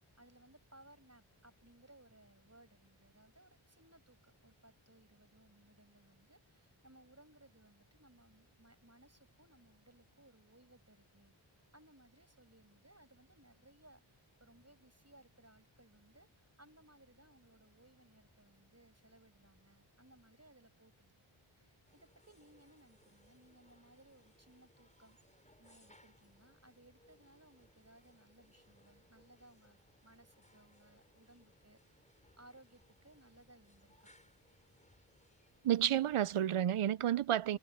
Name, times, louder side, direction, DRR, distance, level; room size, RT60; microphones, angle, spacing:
voice 1, 0.2-21.2 21.5-25.2 25.6-31.8 32.4-34.1 37.5-37.6, right 1 dB, 30° right, 6.9 m, -64 dB
sound 1, 21.9-36.4, left 1 dB, 15° left, 5.3 m, -68 dB
voice 2, 35.6-37.6, right 11 dB, 85° right, 0.6 m, -31 dB
wide cardioid pair, 40°, 50 cm